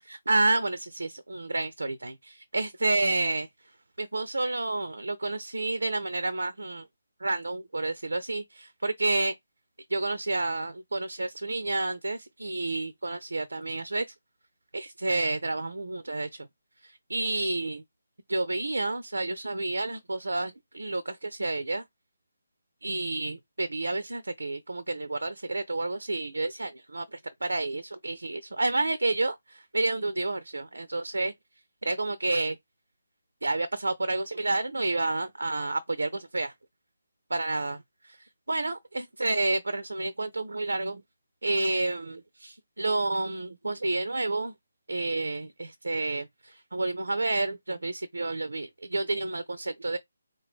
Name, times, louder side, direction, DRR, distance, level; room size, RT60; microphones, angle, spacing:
voice 1, 0.0-3.5 4.0-6.9 7.2-9.3 9.9-14.1 14.7-16.5 16.8-17.8 18.3-21.8 22.8-31.3 31.8-32.6 33.4-36.5 37.3-37.8 38.5-41.0 41.4-44.5 44.9-50.0, right 2 dB, 65° right, 0.4 m, -30 dB
3.5 x 2.8 x 3.6 m
figure-of-eight pair, 150°, 0 cm